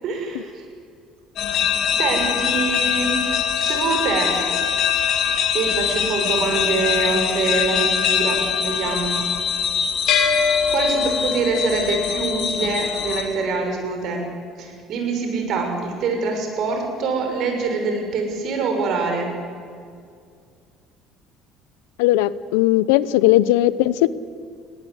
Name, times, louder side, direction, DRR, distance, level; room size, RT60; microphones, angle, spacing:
voice 1, 0.0-0.7 2.0-4.4 5.5-9.2 10.7-14.3 14.6-19.4, right 4 dB, 60° right, 3 dB, 6.0 m, -24 dB
sound 1, 1.4-13.2, left 7 dB, 60° left, 2.9 m, -22 dB
voice 2, 22.0-24.1, left 15 dB, 80° left, 18 dB, 0.6 m, -17 dB
21.0 x 18.5 x 7.9 m, 2.3 s
hypercardioid pair, 70°, 0 cm